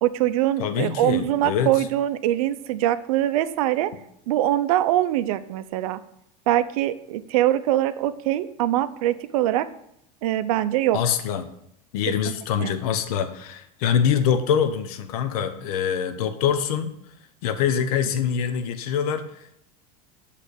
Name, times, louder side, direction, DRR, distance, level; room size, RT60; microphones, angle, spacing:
voice 1, 0.0-3.9 4.3-6.0 6.5-9.7 10.2-11.0 12.6-12.7, right 13 dB, 75° right, 12 dB, 0.6 m, -23 dB
voice 2, 0.6-1.9 10.9-11.4 11.9-16.9 17.4-19.6, left 8 dB, 80° left, 9 dB, 0.8 m, -24 dB
8.5 x 3.3 x 6.4 m, 0.75 s
supercardioid pair, 155°, 19 cm